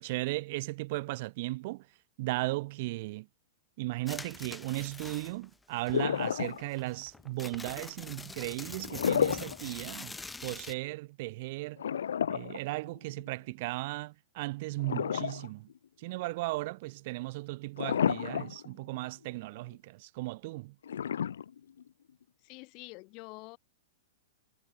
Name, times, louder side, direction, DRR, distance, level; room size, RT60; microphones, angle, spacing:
voice 1, 0.0-1.9 2.2-3.3 3.8-10.1 10.4-11.8 12.3-15.7 16.0-20.8, right 21 dB, 50° right, 2.4 m, -36 dB
sound 1, 4.1-5.5 5.9-10.7, left 3 dB, 5° left, 1.2 m, -45 dB
sound 2, 5.9-6.9 8.8-9.6 10.0-10.1 11.8-13.3 14.8-15.7 16.1-16.2 17.8-18.7 19.0-19.1 20.8-21.9, left 8 dB, 90° left, 0.8 m, -31 dB
voice 2, 22.4-23.6, left 28 dB, 40° left, 1.9 m, -47 dB
hypercardioid pair, 140°, 0 cm